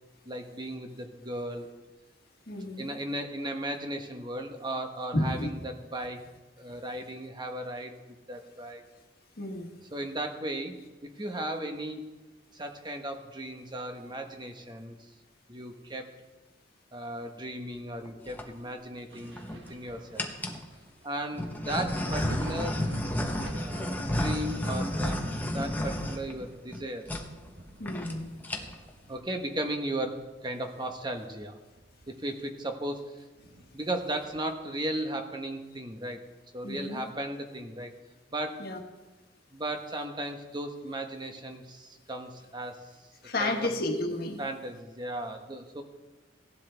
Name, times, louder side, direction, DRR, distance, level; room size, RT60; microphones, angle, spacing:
voice 1, 0.2-1.7 2.8-6.2 6.6-8.8 9.9-12.1 12.5-14.9 15.5-16.1 16.9-20.4 21.0-22.8 23.6-25.2 25.5-27.1 29.1-31.5 32.1-33.1 33.7-36.2 36.5-37.9 38.3-38.6 39.5-42.8 43.4-43.7 44.4-45.8, right 1 dB, 25° right, 5 dB, 1.2 m, -36 dB
voice 2, 2.5-2.9 5.1-5.5 9.4-9.8 27.8-28.4 36.6-37.0 38.6-38.8 43.2-44.4, left 1 dB, 55° left, 3 dB, 1.5 m, -31 dB
sound 1, 18.0-18.5 19.2-19.7 20.2-20.6 21.3-26.8 27.1-27.2 27.5-27.6 27.8-28.1 28.4-28.9, left 1 dB, 10° left, 1.0 m, -32 dB
Thunder, 19.1-30.4 30.9-32.4 32.7-32.8 33.4-34.7 36.1-36.2, right 1 dB, 65° right, 1.4 m, -47 dB
17.0 x 11.5 x 3.4 m, 1.1 s
head